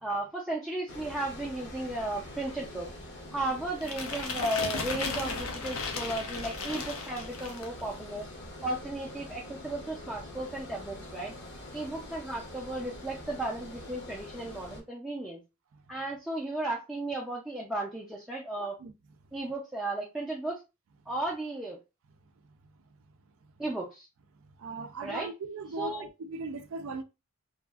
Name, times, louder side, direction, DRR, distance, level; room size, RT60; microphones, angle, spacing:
voice 1, 0.0-2.9 3.3-8.3 8.6-11.3 11.7-15.4 15.9-18.8 19.3-20.6 21.1-21.8 23.6-24.1 25.0-25.3 25.7-26.0, right 2 dB, 5° right, 0.4 m, -35 dB
Water, 0.9-14.8, left 1 dB, 55° left, 0.8 m, -45 dB
sound 1, 3.8-7.8, left 4 dB, 85° left, 0.6 m, -35 dB
voice 2, 18.6-18.9 24.6-27.0, right 3 dB, 70° right, 0.4 m, -38 dB
2.8 x 2.4 x 2.3 m
head